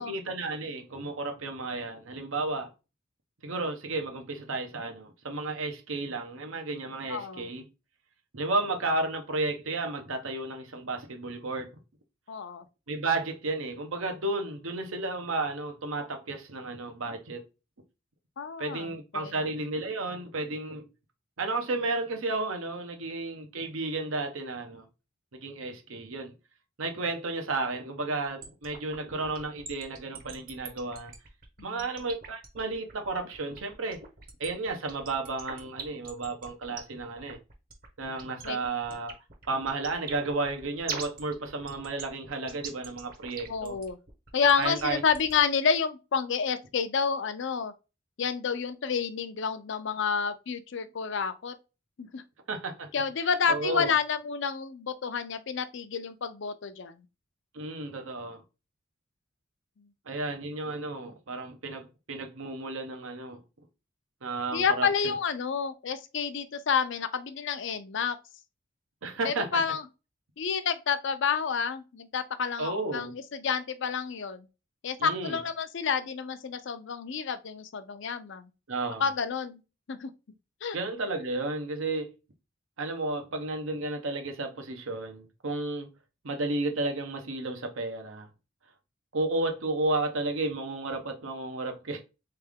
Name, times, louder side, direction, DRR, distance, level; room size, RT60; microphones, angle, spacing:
voice 1, 0.0-2.7 3.4-7.7 8.3-11.7 12.9-17.4 18.6-20.9 21.4-24.9 25.3-26.3 26.8-31.1 31.6-34.0 34.4-37.4 38.0-39.1 39.5-43.8 44.6-45.0 52.5-52.9 53.5-53.9 57.5-58.4 60.1-63.4 64.2-65.1 69.0-69.6 72.6-73.1 75.0-75.4 78.7-79.1 80.7-82.1 82.8-85.9 86.2-88.3 89.1-92.0, right 2 dB, 80° right, 0.9 m, -32 dB
voice 2, 7.1-7.5 12.3-12.6 18.4-19.3 31.6-31.7 38.4-38.6 43.5-44.0 44.3-47.7 48.2-51.6 52.0-52.2 52.9-57.0 64.5-68.2 69.2-69.8 70.4-74.5 74.8-78.5 79.0-79.6 79.9-80.1 80.6-80.8, left 6 dB, 60° left, 0.5 m, -29 dB
sound 1, 28.4-45.4, right 5 dB, 45° right, 1.0 m, -42 dB
3.7 x 3.3 x 3.5 m
head